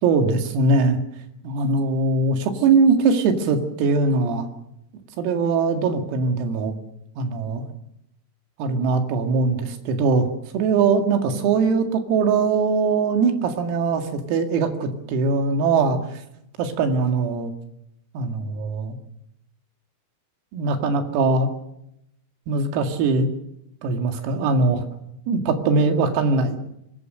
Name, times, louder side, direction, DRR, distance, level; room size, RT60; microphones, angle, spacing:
voice 1, 0.0-1.0 1.4-4.5 5.2-6.7 7.2-7.7 8.6-10.3 10.5-16.0 16.6-17.5 18.1-19.0 20.5-21.5 22.5-23.3 23.8-24.8 25.3-26.6, right 4 dB, 85° right, 6 dB, 4.9 m, -21 dB
25.0 x 19.5 x 6.7 m, 0.80 s
omnidirectional pair, 6.0 m